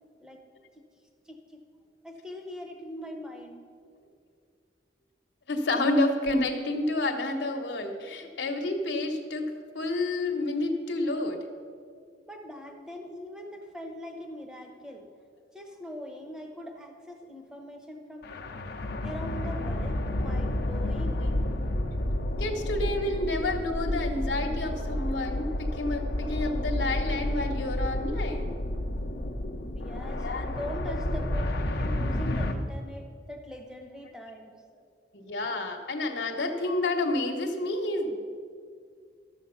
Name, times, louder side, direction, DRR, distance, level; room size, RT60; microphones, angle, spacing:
voice 1, 1.3-1.6 2.0-3.6 12.2-15.1 15.5-18.3 19.0-21.3 29.7-31.4 31.7-34.8, equal, 5° right, 3 dB, 1.1 m, -42 dB
voice 2, 5.5-9.5 9.7-11.4 21.2-21.4 22.4-28.6 30.2-30.5 31.0-31.1 35.1-38.1, left 2 dB, 75° left, 3 dB, 1.1 m, -29 dB
sound 1, 18.2-32.5, left 1 dB, 60° left, 0.8 m, -30 dB
12.5 x 7.4 x 5.7 m, 2.1 s
head